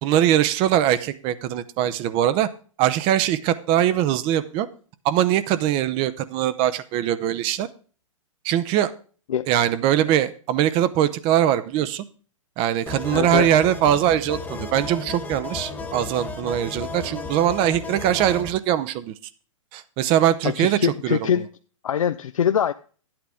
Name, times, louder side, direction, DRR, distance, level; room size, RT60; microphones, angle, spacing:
voice 1, 0.0-2.5 2.8-4.7 5.0-7.7 8.4-8.9 9.5-12.0 12.6-19.1 19.7-21.2, right 11 dB, 30° right, 0.7 m, -22 dB
sound 1, 12.9-18.5, left 3 dB, 10° left, 1.3 m, -34 dB
voice 2, 13.1-13.5 20.4-21.5 21.8-22.7, left 9 dB, 85° left, 0.4 m, -23 dB
11.0 x 8.7 x 3.5 m
hypercardioid pair, 130°, 17 cm